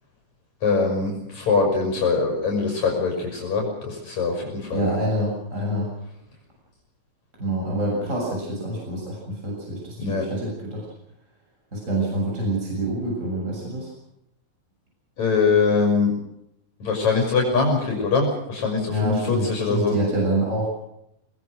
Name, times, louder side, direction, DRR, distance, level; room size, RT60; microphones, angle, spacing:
voice 1, 0.6-4.9 10.0-10.2 15.2-16.1 16.8-19.9, left 4 dB, 70° left, 0 dB, 6.7 m, -22 dB
voice 2, 4.7-5.9 7.4-10.9 11.7-13.9 18.9-20.7, right 1 dB, 25° right, -2 dB, 7.6 m, -26 dB
26.0 x 20.0 x 6.4 m, 0.81 s
omnidirectional pair, 3.3 m